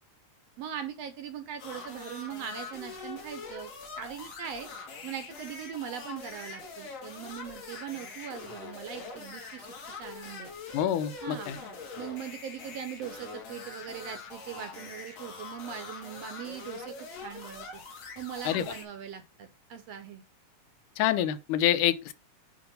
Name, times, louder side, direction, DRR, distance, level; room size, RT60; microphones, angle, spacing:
voice 1, 0.6-3.7 4.0-4.7 5.0-9.7 10.0-10.5 11.2-11.5 12.0-17.7 18.2-20.2, right 9 dB, 70° right, 1.7 m, -40 dB
sound 1, 1.6-18.8, left 4 dB, 55° left, 2.9 m, -43 dB
voice 2, 10.7-11.6 18.5-18.6 21.0-22.1, left 11 dB, 85° left, 2.2 m, -26 dB
8.6 x 3.0 x 5.2 m
omnidirectional pair, 3.6 m